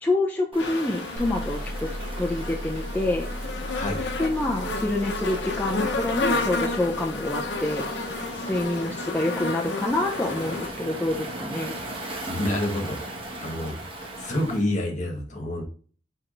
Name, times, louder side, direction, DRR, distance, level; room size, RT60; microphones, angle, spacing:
voice 1, 0.0-1.9 2.2-3.3 4.2-7.8 8.3-11.8, left 2 dB, 10° left, -1 dB, 0.5 m, -27 dB
Waves surf, 0.5-14.7, right 1 dB, 30° right, 1.3 m, -39 dB
sound 1, 0.6-10.7, left 2 dB, 70° left, 0.8 m, -31 dB
sound 2, 1.2-8.7, equal, 55° right, 1.3 m, -37 dB
voice 2, 12.3-13.0 13.4-13.8 14.2-15.6, left 1 dB, 40° left, 2 dB, 1.3 m, -28 dB
4.7 x 4.6 x 2.5 m, 0.41 s
head